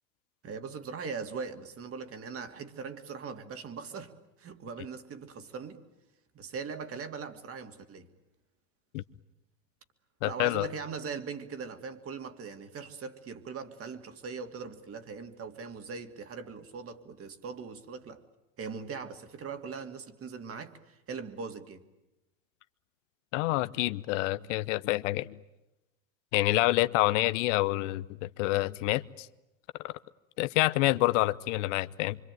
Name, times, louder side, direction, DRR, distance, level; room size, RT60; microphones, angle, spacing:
voice 1, 0.4-5.8 6.3-8.1 10.2-18.2 18.6-21.8, right 5 dB, 35° right, 2.6 m, -40 dB
voice 2, 10.2-10.7 23.3-25.4 26.3-29.3 29.8-29.9 30.4-32.2, left 18 dB, 65° left, 0.9 m, -27 dB
25.5 x 25.5 x 9.3 m
hypercardioid pair, 95°, 40 cm